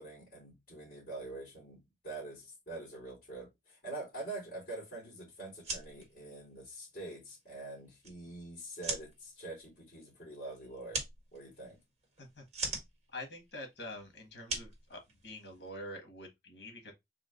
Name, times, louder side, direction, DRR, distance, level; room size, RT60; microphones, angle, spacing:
voice 1, 0.0-11.0 11.3-11.8, right 2 dB, 50° left, 2.5 m, -45 dB
sound 1, 5.5-15.7, right 3 dB, 40° right, 1.6 m, -43 dB
voice 2, 13.1-16.9, left 1 dB, 75° left, 1.7 m, -46 dB
3.8 x 2.9 x 3.8 m
head